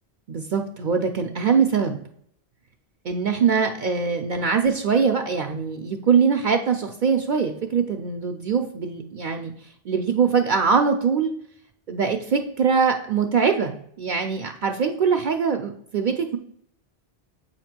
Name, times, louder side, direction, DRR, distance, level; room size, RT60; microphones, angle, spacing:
voice 1, 0.3-2.0 3.0-9.5 9.8-11.4 11.9-16.4, right 6 dB, 55° right, 4 dB, 0.6 m, -22 dB
7.8 x 2.9 x 5.8 m, 0.66 s
omnidirectional pair, 1.0 m